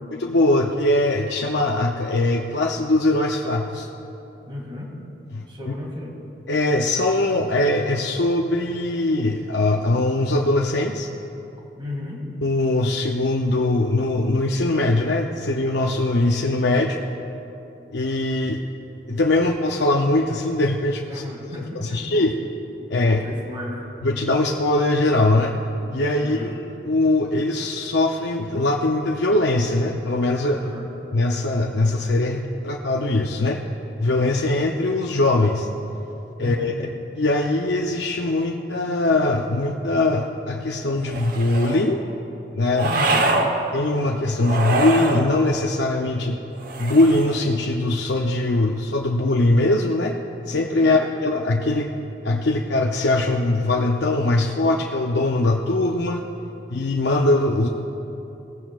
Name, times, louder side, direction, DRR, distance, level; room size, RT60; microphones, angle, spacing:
voice 1, 0.1-3.9 5.3-5.7 6.5-11.1 12.4-17.0 17.9-18.6 19.1-21.2 21.8-22.3 22.9-23.2 24.0-25.5 25.9-30.7 31.1-33.6 34.0-35.7 36.4-36.8 37.2-42.0 42.5-42.9 43.7-46.4 46.8-50.1 50.5-51.9 52.2-56.2 56.7-57.7, left 2 dB, 70° left, 0 dB, 0.6 m, -21 dB
voice 2, 4.4-5.0 5.4-6.2 11.8-12.3 21.1-22.3 23.0-23.9 26.2-26.6 30.6-30.9 36.4-36.8 42.8-43.5 50.8-51.0, left 1 dB, 30° right, -2 dB, 2.1 m, -34 dB
sound 1, 41.0-41.9 42.8-43.5 44.4-45.3 46.6-47.4, right 2 dB, 50° right, 0.9 m, -24 dB
18.0 x 15.0 x 2.4 m, 2.9 s
head